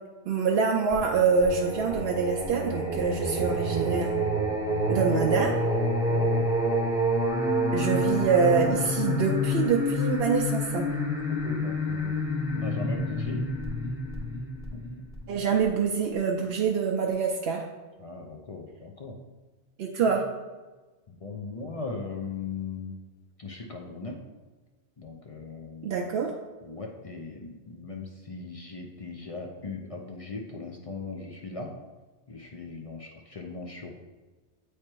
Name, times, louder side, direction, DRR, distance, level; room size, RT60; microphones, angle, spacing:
voice 1, 0.3-4.1 4.9-5.5 7.7-10.8 15.3-17.6 19.8-20.2 25.8-26.3, right 6 dB, 65° right, 0 dB, 0.8 m, -25 dB
Singing, 0.9-15.6, equal, 5° right, 0.8 m, -28 dB
voice 2, 6.1-6.5 11.3-13.5 14.7-15.0 18.0-19.2 20.0-20.2 21.1-23.0 23.4-24.2 25.0-26.1 26.6-31.8 32.3-33.9, left 4 dB, 40° left, 1 dB, 0.6 m, -39 dB
8.6 x 3.3 x 4.5 m, 1.3 s
omnidirectional pair, 1.2 m